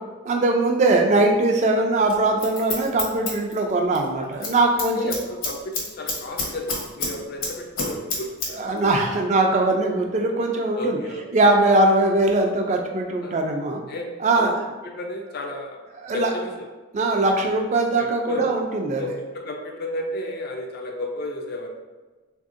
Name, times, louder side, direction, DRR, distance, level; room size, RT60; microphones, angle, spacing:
voice 1, 0.2-5.1 8.5-11.0 11.3-13.8 14.2-14.5 16.0-16.3 16.9-19.0, right 2 dB, 35° right, 2 dB, 0.3 m, -21 dB
Scissors, 2.1-4.1 4.3-4.5 4.8-7.1 7.4-8.5 8.8-8.9, left 3 dB, 80° left, 0.9 m, -28 dB
voice 2, 4.2-4.5 5.0-8.6 10.7-11.7 13.2-14.5 14.8-15.8 16.1-16.7 17.8-18.5 18.8-21.7, left 1 dB, 50° left, 2 dB, 0.3 m, -33 dB
3.3 x 2.6 x 2.4 m, 1.2 s
head